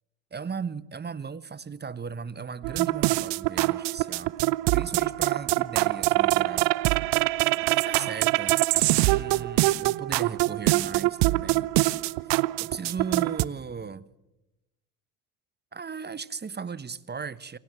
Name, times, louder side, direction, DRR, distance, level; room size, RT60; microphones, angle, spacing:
voice 1, 0.3-4.4 4.7-6.7 7.6-11.7 12.2-14.1 15.7-17.6, right 6 dB, 20° right, 1.1 m, -37 dB
sound 1, 2.6-13.4, right 21 dB, 60° right, 0.8 m, -24 dB
28.5 x 23.0 x 7.5 m
hypercardioid pair, 65°, 45 cm